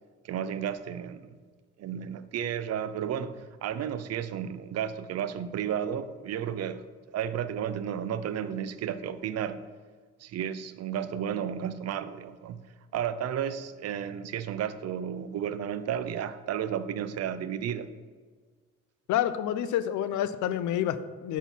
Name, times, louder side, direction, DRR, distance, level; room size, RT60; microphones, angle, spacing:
voice 1, 0.2-1.3 1.8-6.8 7.1-9.6 10.2-12.6 12.9-17.9, right 9 dB, 55° right, 12 dB, 0.5 m, -33 dB
voice 2, 19.1-21.4, left 11 dB, 75° left, 13 dB, 0.5 m, -28 dB
5.9 x 4.2 x 5.4 m, 1.5 s
cardioid pair, 90°, 30 cm